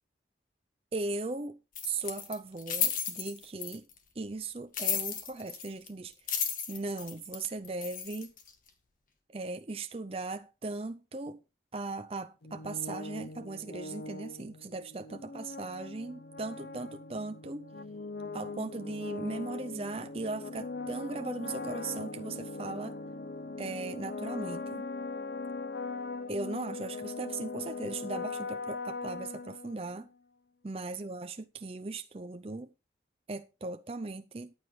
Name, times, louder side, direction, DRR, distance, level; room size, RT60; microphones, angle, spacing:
voice 1, 0.9-1.6 1.8-3.9 4.2-6.1 6.7-8.3 9.3-11.4 11.7-17.7 18.3-23.0 23.6-24.9 26.3-30.1 30.6-32.7 33.3-34.5, right 3 dB, 35° right, 0.5 m, -38 dB
sound 1, 1.7-4.0 4.7-5.9 6.1-8.5, left 7 dB, 45° left, 2.0 m, -33 dB
sound 2, 12.4-30.1, left 3 dB, 65° left, 0.6 m, -40 dB
14.0 x 9.7 x 3.2 m
head